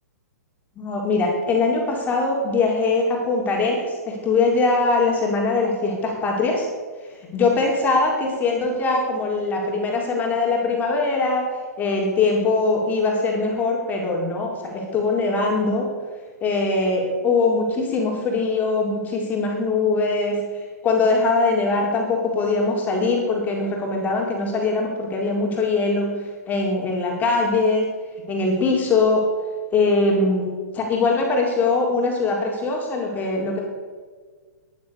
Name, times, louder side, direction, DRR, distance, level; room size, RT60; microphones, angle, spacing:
voice 1, 0.8-6.7 7.3-11.5 11.8-15.9 16.4-20.5 20.8-27.9 28.3-29.2 29.7-30.4 30.7-33.6, left 3 dB, 20° left, -1 dB, 4.3 m, -22 dB
17.5 x 11.0 x 6.9 m, 1.5 s
hypercardioid pair, 125°, 9 cm